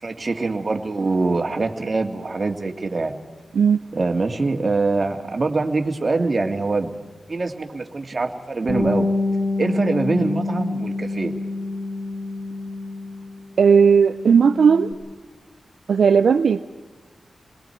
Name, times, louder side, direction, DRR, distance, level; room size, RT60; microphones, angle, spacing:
voice 1, 0.0-3.1 4.0-6.9 7.3-9.1 9.6-11.3, right 3 dB, 45° right, 4 dB, 2.0 m, -24 dB
Bass guitar, 8.7-13.4 13.7-14.9, left 2 dB, 55° left, 3.6 m, -27 dB
voice 2, 13.6-14.9 15.9-16.7, right 6 dB, 85° right, 9 dB, 0.5 m, -15 dB
29.5 x 21.5 x 4.6 m, 1.3 s
cardioid pair, 65°, 0 cm